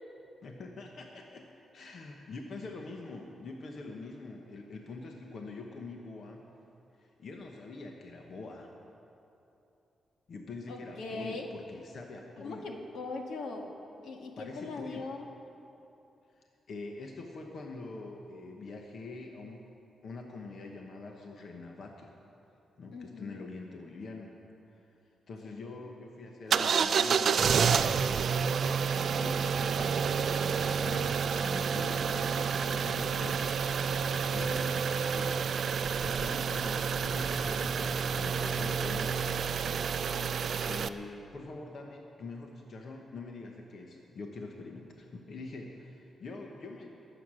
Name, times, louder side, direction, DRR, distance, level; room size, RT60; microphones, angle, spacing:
voice 1, 0.4-1.5 1.7-6.5 7.0-8.7 10.3-12.7 14.4-15.1 16.4-19.6 20.0-22.1 22.8-24.3 24.7-24.8 25.3-28.1 28.5-33.7 34.3-35.5 36.0-40.1 40.6-46.9, left 3 dB, 50° left, 1 dB, 1.1 m, -44 dB
voice 2, 10.7-11.5 12.4-13.7 14.0-15.3 22.9-23.5 25.4-25.9 34.8-35.1 40.2-40.7, left 3 dB, 80° left, 2 dB, 1.6 m, -41 dB
sound 1, 26.5-40.9, right 6 dB, 50° right, 0.4 m, -29 dB
21.0 x 8.0 x 6.3 m, 2.9 s
wide cardioid pair, 165°, 0 cm